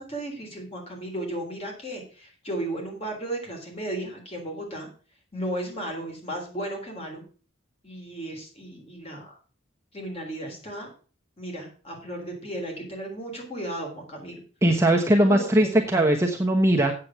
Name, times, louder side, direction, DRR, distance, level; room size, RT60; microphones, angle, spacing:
voice 1, 0.0-4.9 5.3-7.2 7.8-9.4 9.9-10.9 11.4-14.4 15.2-15.8, right 1 dB, 30° left, 1 dB, 3.5 m, -34 dB
voice 2, 14.6-16.9, right 1 dB, 15° right, 1 dB, 1.0 m, -20 dB
8.4 x 7.7 x 5.7 m, 0.39 s
head